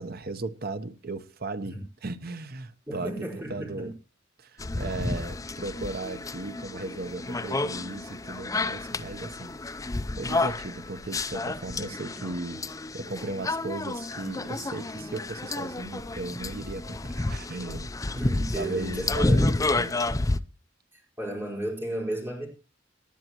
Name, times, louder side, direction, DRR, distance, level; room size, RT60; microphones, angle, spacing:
voice 1, 0.0-3.9 4.4-9.6 10.2-12.6 12.9-17.9 18.4-20.2, right 2 dB, 50° right, 0.9 m, -36 dB
voice 2, 2.9-3.9 18.1-19.5 20.9-22.5, right 1 dB, 10° right, 4.8 m, -34 dB
sound 1, 4.6-20.4, left 2 dB, 15° left, 0.5 m, -30 dB
19.0 x 10.5 x 3.0 m
head